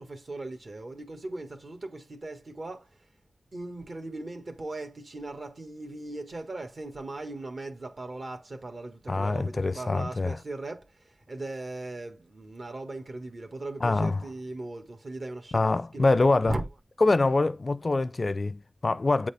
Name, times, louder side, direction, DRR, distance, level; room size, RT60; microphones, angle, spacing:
voice 1, 0.0-2.9 3.5-16.1 16.4-16.6, right 2 dB, 55° right, 1.5 m, -38 dB
voice 2, 9.1-10.4 13.8-14.2 15.5-16.5 17.0-19.3, left 3 dB, 45° left, 0.4 m, -24 dB
8.6 x 4.0 x 3.4 m
wide cardioid pair, 70°, 0 cm